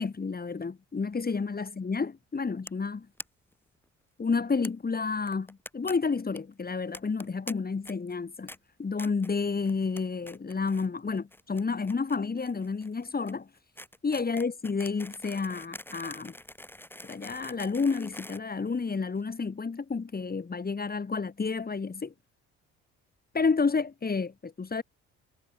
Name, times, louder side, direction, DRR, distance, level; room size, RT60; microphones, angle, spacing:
voice 1, 0.0-3.1 4.2-8.5 8.8-13.5 14.0-16.3 17.0-22.1 23.3-24.8, left 4 dB, 30° left, 4.5 m, -30 dB
sound 1, 2.7-2.9 3.2-3.3 3.5-3.6 3.8-3.9 4.6-4.7 5.3-5.9 6.2-6.4 6.9-7.5 7.8-8.2 8.5-8.6 9.0-9.3 9.7-10.0 10.3-10.9 11.1-19.2, left 1 dB, 5° left, 7.4 m, -45 dB
cardioid pair, 90°, 30 cm